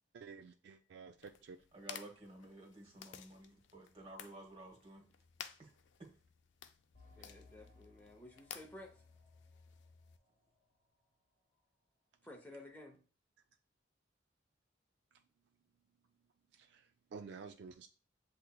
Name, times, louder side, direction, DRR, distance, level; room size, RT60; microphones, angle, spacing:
voice 1, 0.1-1.6 16.5-17.9, right 5 dB, 60° right, 6 dB, 0.3 m, -51 dB
sound 1, 1.2-10.2, left 8 dB, 70° left, 0.4 m, -55 dB
voice 2, 1.7-5.0 5.6-5.7 6.0-6.1, right 2 dB, 30° right, 1 dB, 1.1 m, -53 dB
sound 2, 6.9-11.2 11.5-11.6 12.2-12.3, left 3 dB, 45° left, 0.9 m, -65 dB
voice 3, 7.2-9.0 12.2-13.0, left 1 dB, 10° left, 2 dB, 0.6 m, -54 dB
7.7 x 2.8 x 2.2 m, 0.38 s
head